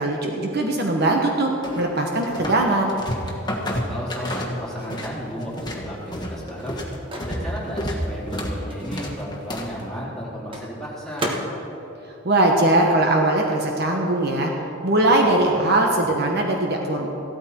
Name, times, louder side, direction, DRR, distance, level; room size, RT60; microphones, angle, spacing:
voice 1, 0.0-2.9 12.2-14.5 14.8-17.1, right 2 dB, 50° right, 1 dB, 1.2 m, -20 dB
sound 1, 1.6-2.6 2.9-5.1 5.4-9.8, equal, 20° left, 1.6 m, -30 dB
voice 2, 3.9-6.8 7.2-11.3 15.1-15.9, equal, ahead, -8 dB, 3.6 m, -33 dB
Microwave oven, 6.0-13.4 13.6-15.5, right 1 dB, 25° right, 1.3 m, -37 dB
15.5 x 13.0 x 4.4 m, 3.0 s
head